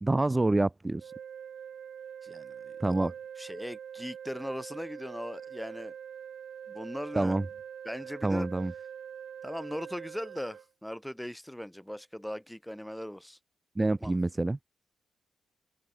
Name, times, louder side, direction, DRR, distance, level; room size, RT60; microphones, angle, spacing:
voice 1, 0.0-1.1 2.8-3.1 7.1-7.4 8.2-8.7 13.8-14.6, right 2 dB, 15° right, 0.6 m, -27 dB
sound 1, 1.0-10.6, right 8 dB, 55° right, 3.9 m, -44 dB
voice 2, 2.2-6.0 6.7-7.4 7.8-8.5 9.4-13.4 13.8-14.2, equal, ahead, 3.2 m, -39 dB
open air
wide cardioid pair, 160°, 0 cm